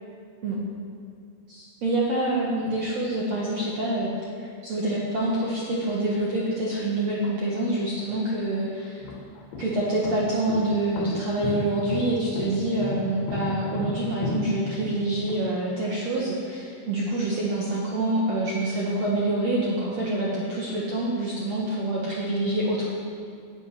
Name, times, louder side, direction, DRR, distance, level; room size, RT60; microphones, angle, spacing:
voice 1, 1.5-4.1 4.4-9.0 9.6-22.9, right 1 dB, 60° right, -5 dB, 1.8 m, -26 dB
sound 1, 8.1-8.2 8.9-15.4, left 2 dB, 70° left, 3.5 m, -32 dB
18.0 x 9.0 x 6.0 m, 2.3 s
omnidirectional pair, 5.2 m